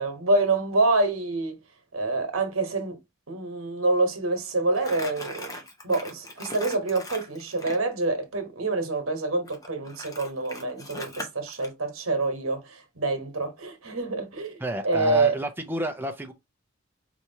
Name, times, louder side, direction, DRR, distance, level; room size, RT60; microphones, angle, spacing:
voice 1, 0.0-1.6 1.9-3.0 3.3-15.4, right 2 dB, 75° right, 1.2 m, -26 dB
Crumpling crinkling, 4.7-7.8 9.5-11.7, left 1 dB, 15° left, 1.0 m, -39 dB
voice 2, 14.6-16.3, right 1 dB, 10° right, 0.6 m, -31 dB
4.7 x 2.9 x 2.8 m
head